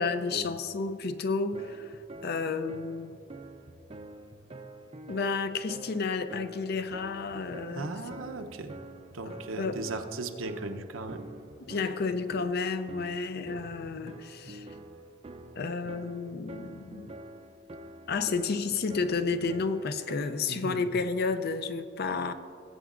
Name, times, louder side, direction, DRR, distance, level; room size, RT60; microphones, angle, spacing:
voice 1, 0.0-3.2 5.1-8.0 9.2-9.8 11.6-14.7 15.6-17.1 18.1-22.3, left 4 dB, 50° left, 0.5 m, -31 dB
sound 1, 1.5-20.6, right 1 dB, 30° right, 0.5 m, -47 dB
voice 2, 7.7-8.7 9.1-11.2 13.5-13.9 20.5-20.9, right 2 dB, 80° right, 0.7 m, -37 dB
18.5 x 8.0 x 2.5 m
head